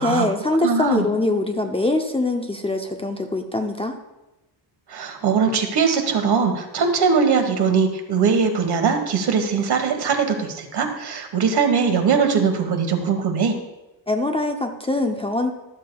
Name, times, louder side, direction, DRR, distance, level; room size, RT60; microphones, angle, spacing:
voice 1, 0.0-4.0 14.1-15.5, left 2 dB, 15° left, 4 dB, 0.6 m, -23 dB
voice 2, 0.6-1.0 4.9-13.5, right 5 dB, 55° right, 5 dB, 1.4 m, -21 dB
13.0 x 7.4 x 2.3 m, 0.98 s
cardioid pair, 110°, 45 cm